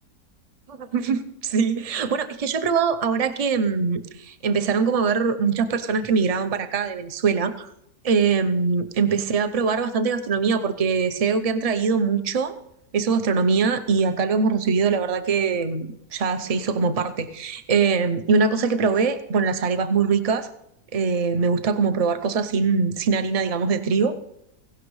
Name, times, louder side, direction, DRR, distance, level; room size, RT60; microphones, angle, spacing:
voice 1, 0.7-7.7 8.0-12.5 12.9-20.5 20.9-24.2, right 5 dB, 60° right, 9 dB, 0.3 m, -22 dB
17.5 x 16.5 x 3.2 m, 0.80 s
omnidirectional pair, 1.7 m